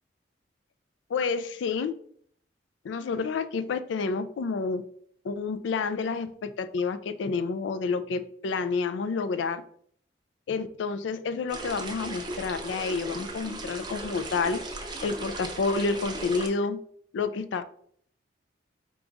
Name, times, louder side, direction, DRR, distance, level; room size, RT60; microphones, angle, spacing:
voice 1, 1.1-1.9 2.8-4.8 5.2-9.6 10.5-14.6 15.0-16.8 17.1-17.6, left 4 dB, 90° left, 12 dB, 0.4 m, -29 dB
sound 1, 11.5-16.5, right 2 dB, 25° right, 0.6 m, -37 dB
4.7 x 2.3 x 3.9 m, 0.62 s
head